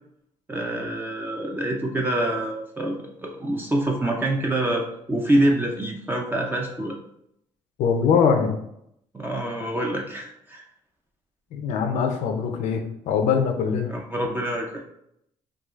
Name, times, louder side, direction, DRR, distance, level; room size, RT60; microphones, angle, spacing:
voice 1, 0.5-7.0 9.1-10.6 13.9-14.8, right 1 dB, 15° right, 0 dB, 0.5 m, -26 dB
voice 2, 7.8-8.5 11.5-13.9, left 6 dB, 80° left, 5 dB, 0.6 m, -22 dB
4.7 x 2.4 x 2.4 m, 0.76 s
cardioid pair, 85°, 12 cm